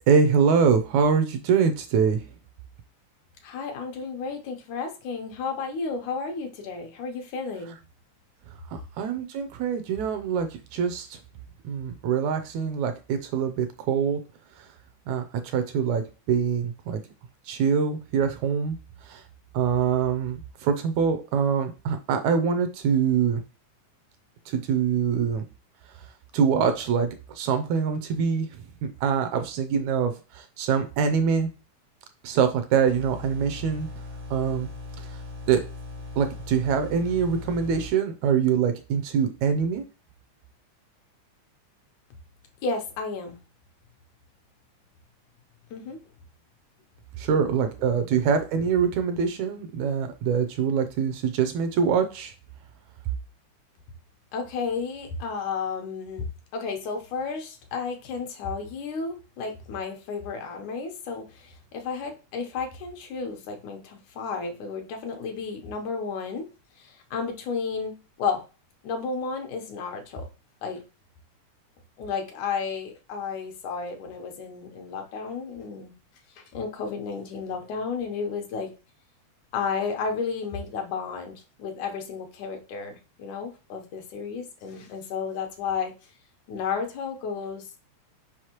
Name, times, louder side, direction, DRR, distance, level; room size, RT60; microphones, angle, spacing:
voice 1, 0.1-2.2 8.7-11.2 11.6-14.2 15.1-16.0 16.3-17.0 17.5-18.8 19.1-19.2 19.5-23.4 24.5-25.4 26.3-27.1 27.4-28.5 29.0-31.5 32.2-33.9 34.3-34.7 35.5-35.6 36.2-39.8 47.2-52.3, right 6 dB, 75° right, 7 dB, 1.9 m, -24 dB
voice 2, 3.4-7.8 42.6-43.4 45.7-46.0 54.3-56.2 56.5-66.5 66.8-68.4 68.8-70.3 70.6-70.8 72.0-75.9 76.4-78.7 79.5-85.9 86.5-87.8, left 5 dB, 75° left, 3 dB, 2.3 m, -32 dB
sound 1, 32.9-37.9, left 3 dB, 55° right, 1.0 m, -39 dB
6.3 x 5.3 x 2.9 m, 0.32 s
omnidirectional pair, 3.6 m